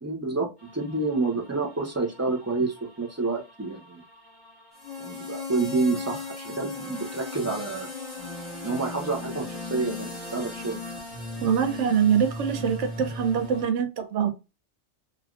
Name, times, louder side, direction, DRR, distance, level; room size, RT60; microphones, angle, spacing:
voice 1, 0.0-4.0 5.0-7.9 8.6-10.8, right 3 dB, 20° right, 0.4 m, -29 dB
sound 1, 0.6-13.6, left 3 dB, 20° left, 1.2 m, -38 dB
voice 2, 11.4-14.3, right 8 dB, 75° right, 0.9 m, -24 dB
3.3 x 2.3 x 2.4 m
omnidirectional pair, 1.3 m